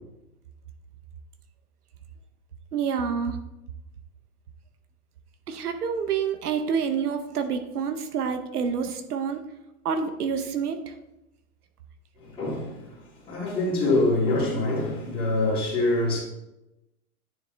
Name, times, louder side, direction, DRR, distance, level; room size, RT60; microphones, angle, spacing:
voice 1, 2.7-3.4 5.5-9.4 9.8-10.9, right 6 dB, 85° right, 1.0 m, -28 dB
voice 2, 12.2-16.2, left 2 dB, 10° left, 2.3 m, -25 dB
9.8 x 3.7 x 3.4 m
hypercardioid pair, 150°, 44 cm